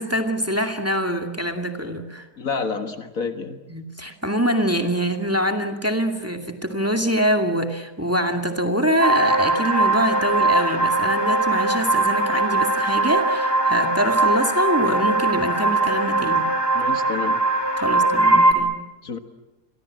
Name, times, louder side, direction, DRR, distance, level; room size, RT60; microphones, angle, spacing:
voice 1, 0.0-2.3 3.7-16.5 17.8-18.7, equal, 10° right, 5 dB, 2.2 m, -24 dB
voice 2, 2.4-3.6 16.7-17.4 19.0-19.2, left 5 dB, 60° left, 8 dB, 2.1 m, -29 dB
sound 1, 9.0-18.5, right 2 dB, 15° left, 2.6 m, -20 dB
30.0 x 23.0 x 7.7 m, 1.1 s
omnidirectional pair, 1.7 m